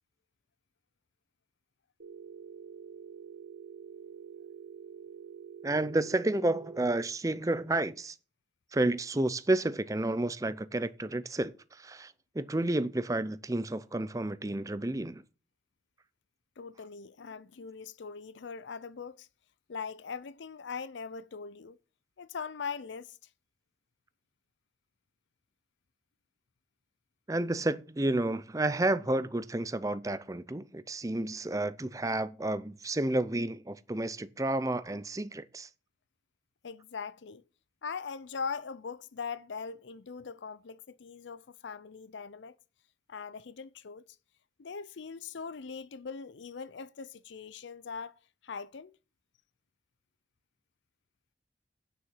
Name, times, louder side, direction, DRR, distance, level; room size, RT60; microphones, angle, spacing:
Telephone, 2.0-7.0, right 8 dB, 80° right, 1.6 m, -47 dB
voice 1, 5.6-8.2 8.7-15.2 27.3-35.7, right 2 dB, 20° right, 0.5 m, -31 dB
voice 2, 16.6-19.3 19.7-21.8 22.2-23.2 36.6-37.4 37.8-42.6 43.1-44.0 44.6-49.0, left 5 dB, 80° left, 0.5 m, -41 dB
9.4 x 6.7 x 7.2 m
head